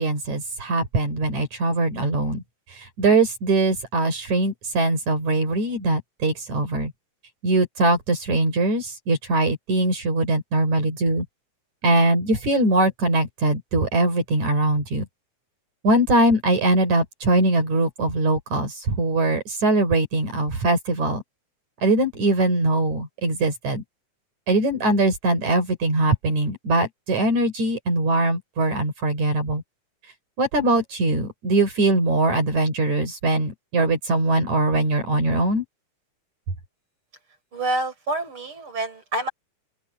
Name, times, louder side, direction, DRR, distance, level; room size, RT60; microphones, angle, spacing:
voice 1, 0.0-2.4 2.7-6.9 7.4-11.2 11.8-15.1 15.8-21.2 21.8-23.8 24.5-29.6 30.4-35.6, right 2 dB, 70° right, 6.0 m, -22 dB
voice 2, 37.5-39.3, right 2 dB, 45° right, 7.3 m, -27 dB
open air
omnidirectional pair, 3.4 m